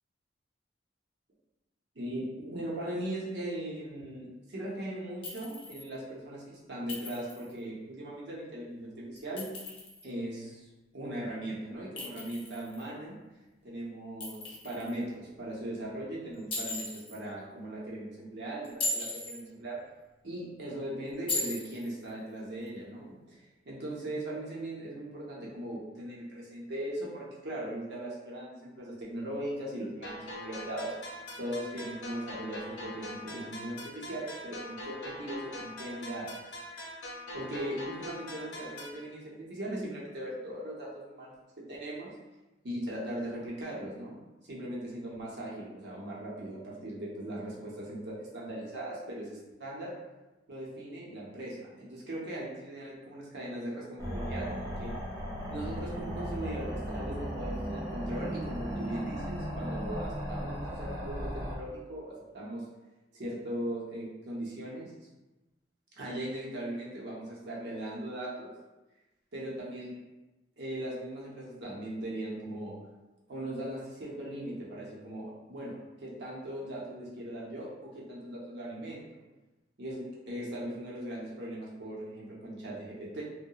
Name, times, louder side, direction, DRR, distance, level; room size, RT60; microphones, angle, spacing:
voice 1, 1.9-9.5 10.0-10.7 10.9-13.1 13.6-19.8 20.2-23.4 23.7-30.9 31.4-36.4 37.3-41.3 41.7-42.1 42.6-44.2 44.5-49.9 50.5-54.9 55.5-62.6 63.1-64.9 66.0-68.5 69.3-69.9 70.6-72.7 73.3-79.0 79.8-83.2, right 1 dB, 65° right, -5 dB, 0.7 m, -39 dB
Chink clink, 5.2-5.9 6.9-7.5 9.2-10.1 12.0-12.8 14.2-14.9 16.5-17.2 18.6-19.4 21.3-21.9, left 2 dB, 30° left, 0.5 m, -37 dB
sound 1, 30.0-39.0, left 1 dB, 85° left, 0.7 m, -43 dB
sound 2, 54.0-61.5, equal, 20° right, 0.5 m, -36 dB
2.8 x 2.1 x 2.3 m, 1.1 s
head